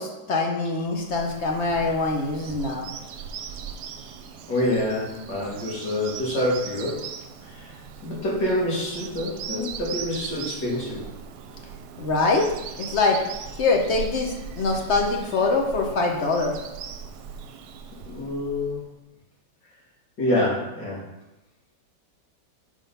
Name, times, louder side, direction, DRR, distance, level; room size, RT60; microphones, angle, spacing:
voice 1, 0.0-2.9 12.0-12.5 12.8-13.2 13.5-16.6, left 3 dB, 55° left, 1 dB, 0.8 m, -24 dB
Bird vocalization bird call bird song, 0.9-18.9, right 6 dB, 75° right, 1.1 m, -39 dB
voice 2, 4.5-7.1 7.4-7.8 8.0-11.0 18.0-18.8 20.2-21.0, left 1 dB, 85° left, -5 dB, 2.5 m, -26 dB
5.1 x 3.7 x 5.4 m, 0.98 s
omnidirectional pair, 1.9 m